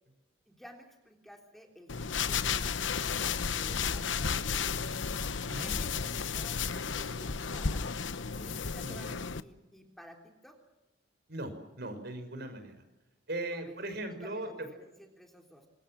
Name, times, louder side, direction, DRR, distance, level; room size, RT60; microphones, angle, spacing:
voice 1, 0.5-2.8 3.1-4.9 5.6-8.0 8.3-10.6 13.5-15.7, equal, ahead, 2 dB, 3.4 m, -53 dB
sound 1, 1.9-9.4, left 6 dB, 80° left, 0.9 m, -33 dB
voice 2, 11.3-12.8 13.3-14.7, right 1 dB, 60° right, 8 dB, 5.6 m, -39 dB
26.5 x 22.5 x 7.6 m, 1.0 s
head